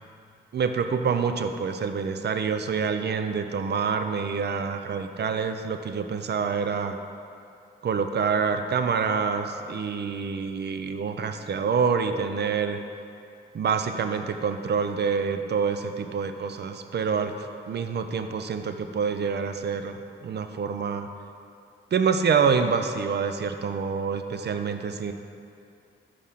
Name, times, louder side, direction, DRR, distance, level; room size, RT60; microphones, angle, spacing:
voice 1, 0.5-7.0 7.8-12.8 13.5-21.1 21.9-25.1, right 6 dB, 55° right, 8 dB, 0.5 m, -27 dB
5.4 x 5.0 x 5.8 m, 2.5 s
cardioid pair, 50°, 21 cm